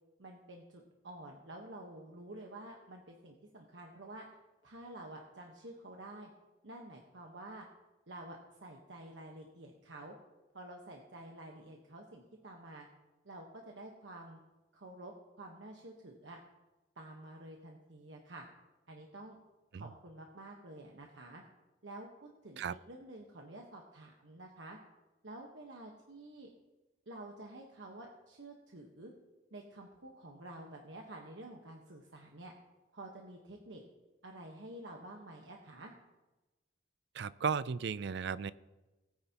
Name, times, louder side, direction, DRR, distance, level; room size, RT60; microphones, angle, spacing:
voice 1, 0.2-4.3 4.6-6.3 6.6-7.7 8.1-10.1 10.5-12.9 13.2-14.4 14.7-16.4 17.0-18.4 18.9-19.4 19.7-21.4 21.8-24.8 25.2-26.5 27.1-29.1 29.5-32.5 32.9-33.8 34.2-35.9, right 1 dB, 90° right, 1 dB, 1.3 m, -50 dB
voice 2, 37.1-38.5, right 6 dB, 70° right, 17 dB, 0.4 m, -35 dB
17.5 x 9.8 x 2.9 m, 1.1 s
head